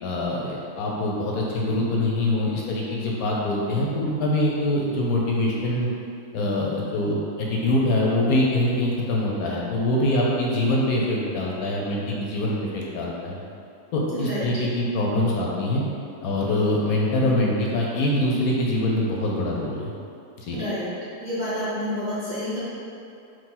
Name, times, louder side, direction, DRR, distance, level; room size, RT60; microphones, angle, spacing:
voice 1, 0.0-5.9 6.3-13.4 13.9-15.8 16.2-19.9 20.4-20.6, left 1 dB, 70° left, -3 dB, 1.0 m, -24 dB
voice 2, 14.1-14.4 20.5-20.9 21.2-22.6, equal, 40° right, -11 dB, 0.7 m, -29 dB
4.3 x 2.7 x 3.7 m, 2.6 s
omnidirectional pair, 1.7 m